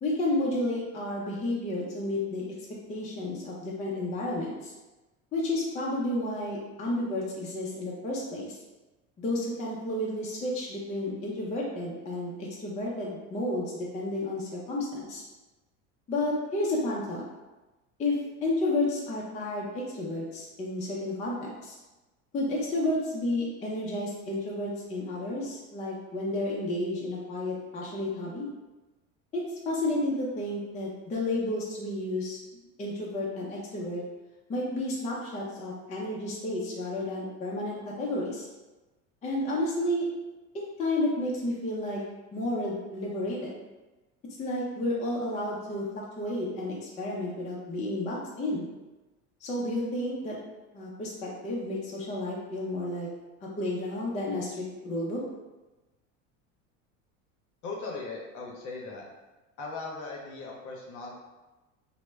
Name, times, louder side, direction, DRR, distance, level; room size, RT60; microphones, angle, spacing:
voice 1, 0.0-2.4 2.9-4.7 5.3-8.6 9.2-15.2 16.1-17.2 18.0-21.8 22.3-28.5 29.3-32.4 32.8-34.0 34.5-38.5 39.2-40.1 40.8-42.0 42.3-43.5 44.4-48.7 49.4-50.4 50.7-53.1 53.4-55.2, left 1 dB, 20° left, -4 dB, 0.4 m, -31 dB
voice 2, 57.6-59.1 59.6-61.1, left 3 dB, 50° left, -1 dB, 0.7 m, -38 dB
2.0 x 2.0 x 3.3 m, 1.1 s
supercardioid pair, 100°, 39 cm